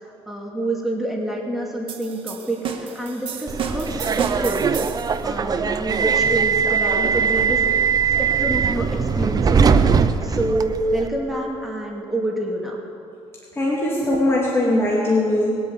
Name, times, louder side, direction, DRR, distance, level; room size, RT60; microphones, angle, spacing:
voice 1, 0.0-4.6 5.2-7.6 8.4-9.6 9.9-12.8, right 1 dB, ahead, -2 dB, 2.4 m, -27 dB
sound 1, 1.9-5.2, right 6 dB, 55° right, 1.8 m, -31 dB
Subway metro underground, 3.5-11.1, right 6 dB, 35° right, 0.7 m, -20 dB
voice 2, 13.6-15.6, left 1 dB, 20° left, -4 dB, 2.5 m, -20 dB
21.0 x 8.4 x 8.1 m, 2.6 s
cardioid pair, 110°, 11 cm